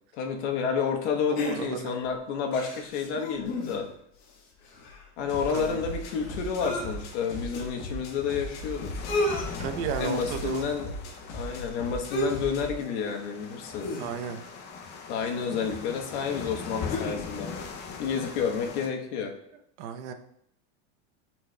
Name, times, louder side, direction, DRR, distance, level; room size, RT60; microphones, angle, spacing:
voice 1, 0.1-3.9 5.2-8.9 10.0-10.9 11.3-14.0 15.1-17.5 18.0-19.3, left 6 dB, 70° left, 3 dB, 1.1 m, -30 dB
sound 1, 1.3-2.0 2.5-4.0 4.3-4.4 4.6-6.9 7.5-7.6 8.5-8.6 8.8-9.5 10.0-10.3 12.1-12.5 12.8-13.0 13.8-14.5 15.6-15.7 16.2-17.2 17.6-17.7, left 1 dB, 50° left, 1.4 m, -33 dB
voice 2, 1.3-2.0 5.2-5.8 9.6-10.7 14.0-14.4 19.8-20.1, right 8 dB, 75° right, 7 dB, 0.8 m, -34 dB
sound 2, 5.2-12.8, left 1 dB, 90° left, 1.5 m, -39 dB
sound 3, 5.3-18.9, left 5 dB, 30° left, 0.6 m, -42 dB
9.9 x 4.5 x 2.2 m, 0.72 s
supercardioid pair, 150°, 34 cm